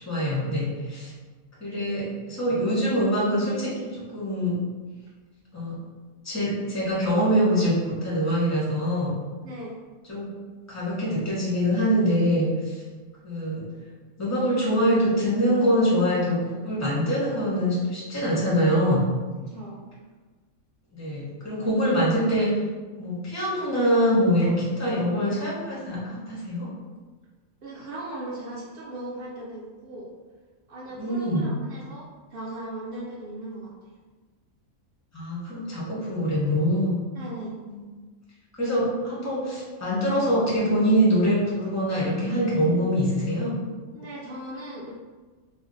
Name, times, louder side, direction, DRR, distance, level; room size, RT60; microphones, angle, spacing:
voice 1, 0.0-1.1 1.6-4.5 5.5-5.8 6.2-9.1 10.1-10.3 10.7-12.8 13.2-13.6 14.2-19.1 20.9-22.6 22.9-26.7 31.0-31.5 35.1-37.0 37.7-37.8 38.5-43.6, equal, 25° left, -6 dB, 0.3 m, -24 dB
voice 2, 9.4-9.8 19.5-19.9 27.6-30.1 30.7-33.7 37.1-37.6 43.9-44.9, right 1 dB, 75° right, -5 dB, 0.5 m, -38 dB
2.4 x 2.1 x 3.8 m, 1.3 s
omnidirectional pair, 1.5 m